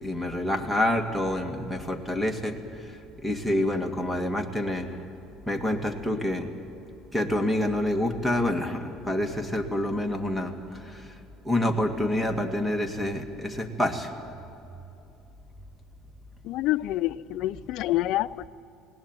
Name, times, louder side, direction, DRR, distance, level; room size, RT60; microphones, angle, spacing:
voice 1, 0.0-5.0 5.5-6.5 7.1-11.2 11.4-14.1, left 1 dB, ahead, 6 dB, 2.2 m, -27 dB
voice 2, 16.5-18.3, left 16 dB, 65° left, 15 dB, 0.5 m, -27 dB
19.5 x 18.0 x 9.2 m, 2.7 s
supercardioid pair, 90°, 0 cm